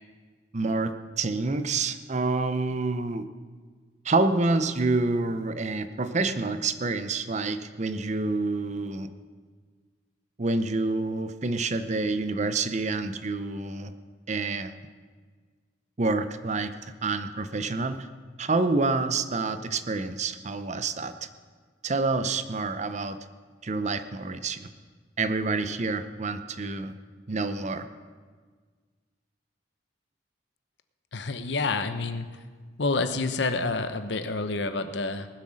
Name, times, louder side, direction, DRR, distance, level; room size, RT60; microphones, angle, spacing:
voice 1, 0.5-3.2 4.0-9.1 10.4-13.9 14.3-14.7 16.0-16.7 17.0-18.1 18.4-21.1 21.8-23.2 23.6-24.7 25.2-26.9 27.3-27.9, right 3 dB, 40° right, 11 dB, 0.7 m, -27 dB
voice 2, 31.1-32.3 32.8-35.3, left 3 dB, 70° left, 10 dB, 0.8 m, -28 dB
19.0 x 7.8 x 6.3 m, 1.5 s
head